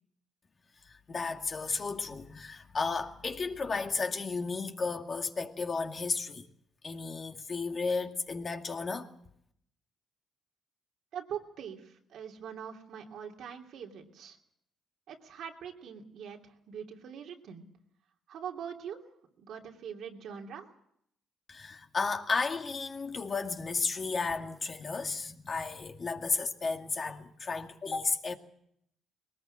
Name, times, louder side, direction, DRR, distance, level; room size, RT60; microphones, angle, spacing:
voice 1, 0.8-6.5 6.8-9.2 21.5-28.4, left 4 dB, 40° left, 2.2 m, -33 dB
voice 2, 11.1-14.4 15.1-17.7 18.3-19.0 19.4-20.7, right 8 dB, 75° right, 2.9 m, -43 dB
21.0 x 19.0 x 7.5 m
cardioid pair, 90°, 0 cm